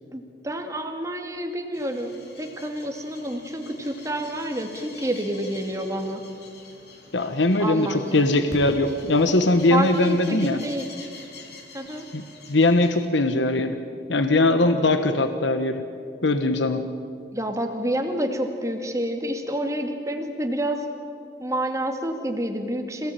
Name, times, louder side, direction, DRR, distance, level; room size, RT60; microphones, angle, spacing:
voice 1, 0.1-2.1 2.4-6.2 7.6-8.3 9.7-10.9 11.7-12.1 17.3-20.9 21.4-23.1, right 1 dB, 15° right, 4 dB, 2.3 m, -28 dB
sound 1, 1.7-13.1, left 2 dB, 60° left, 4.0 m, -45 dB
voice 2, 7.1-10.6 12.1-12.2 12.5-13.8 14.1-15.8 16.2-16.8, left 2 dB, 80° left, 9 dB, 1.2 m, -21 dB
26.5 x 18.0 x 9.2 m, 2.5 s
head